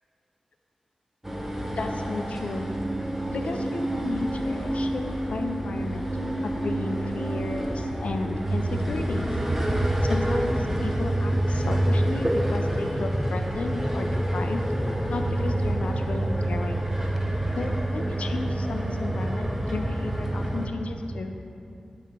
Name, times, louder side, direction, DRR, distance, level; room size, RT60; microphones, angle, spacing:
sound 1, 1.2-20.7, right 1 dB, 10° right, 0.5 m, -27 dB
voice 1, 1.7-2.7 3.3-6.1 6.4-9.3 10.0-14.6 15.1-16.8 17.5-21.3, left 3 dB, 75° left, 5 dB, 0.3 m, -33 dB
8.1 x 2.9 x 4.5 m, 2.6 s
wide cardioid pair, 100°, 2 cm